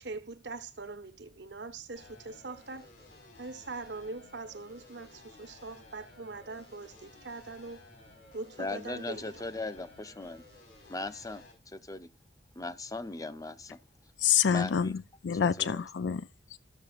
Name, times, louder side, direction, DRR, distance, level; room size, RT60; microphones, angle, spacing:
voice 1, 0.0-2.9 3.4-7.8 8.3-9.5, right 3 dB, 75° right, 1.2 m, -42 dB
sound 1, 1.9-11.5, left 2 dB, 70° left, 4.7 m, -55 dB
voice 2, 8.6-10.4 10.9-12.1 12.6-13.8 14.5-14.9 15.6-15.8, left 2 dB, 20° left, 0.7 m, -38 dB
voice 3, 14.2-16.6, left 8 dB, 90° left, 0.4 m, -28 dB
14.0 x 6.8 x 2.5 m
head